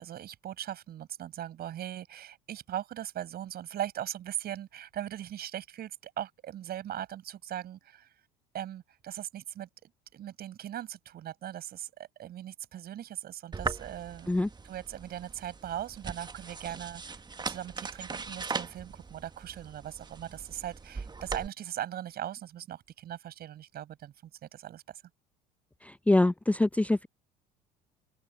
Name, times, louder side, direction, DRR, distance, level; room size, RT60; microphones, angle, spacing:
voice 1, 0.0-8.1 8.5-17.2 17.5-25.0, right 11 dB, 50° right, 6.9 m, -39 dB
sound 1, 13.5-21.5, right 4 dB, 20° right, 1.6 m, -40 dB
voice 2, 25.8-27.1, left 2 dB, 5° left, 0.6 m, -25 dB
open air
figure-of-eight pair, 60°, 21 cm